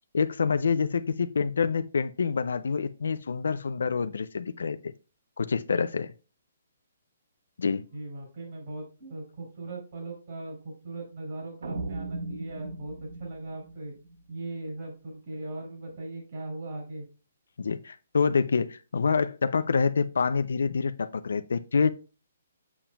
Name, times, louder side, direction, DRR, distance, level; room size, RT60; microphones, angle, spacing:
voice 1, 0.1-4.9 5.4-6.1 7.6-7.8 17.6-21.9, left 5 dB, 85° left, 0.3 m, -27 dB
voice 2, 7.9-13.9 14.3-17.0, right 2 dB, 45° right, 3.4 m, -39 dB
sound 1, 11.6-14.7, right 3 dB, 85° right, 0.7 m, -38 dB
7.1 x 7.0 x 2.2 m
hypercardioid pair, 170°, 0 cm